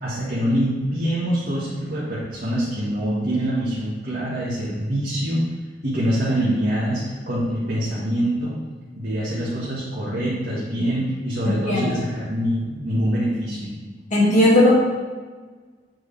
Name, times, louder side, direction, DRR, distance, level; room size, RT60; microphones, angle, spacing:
voice 1, 0.0-5.4 5.8-8.5 8.9-13.7, equal, 55° right, -9 dB, 1.6 m, -24 dB
voice 2, 11.4-12.0 14.1-14.7, left 1 dB, 45° left, -6 dB, 2.0 m, -17 dB
7.7 x 4.7 x 3.3 m, 1.4 s
head